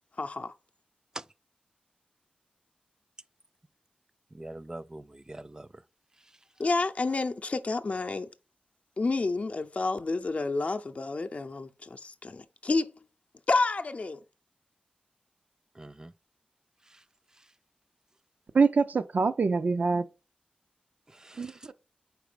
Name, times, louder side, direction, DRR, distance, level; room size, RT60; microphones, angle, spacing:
voice 1, 0.2-0.5 6.6-8.3 9.0-12.9 13.5-14.2, left 3 dB, 50° left, 0.6 m, -29 dB
voice 2, 4.3-5.8 15.7-16.1 16.9-17.0 17.4-17.5 21.1-21.7, right 1 dB, 25° right, 0.4 m, -44 dB
voice 3, 18.5-20.1 21.4-21.7, right 4 dB, 75° right, 0.5 m, -25 dB
5.0 x 4.7 x 5.0 m
wide cardioid pair, 75°, 3 cm